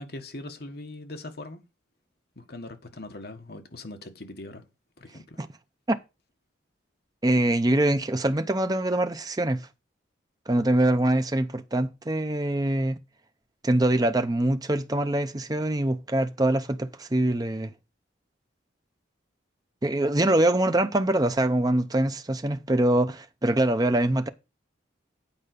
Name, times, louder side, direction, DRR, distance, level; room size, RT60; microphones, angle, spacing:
voice 1, 0.0-1.6 2.4-4.6 5.0-5.4, left 2 dB, 55° left, 1.5 m, -41 dB
voice 2, 7.2-9.7 10.5-13.0 13.6-17.7 19.8-24.3, right 1 dB, 20° right, 0.6 m, -24 dB
8.8 x 5.0 x 6.6 m
head